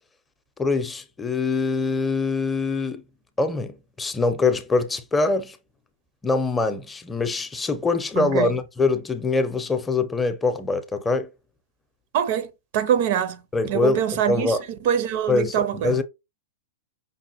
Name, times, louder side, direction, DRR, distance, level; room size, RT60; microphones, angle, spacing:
voice 1, 0.6-3.0 3.4-5.6 6.2-11.3 13.5-14.7 15.3-16.0, left 3 dB, 15° left, 0.6 m, -24 dB
voice 2, 8.2-8.5 12.1-12.5 12.7-13.4 13.7-14.5 14.9-15.9, right 9 dB, 55° right, 0.6 m, -23 dB
5.3 x 2.1 x 2.9 m
hypercardioid pair, 105°, 0 cm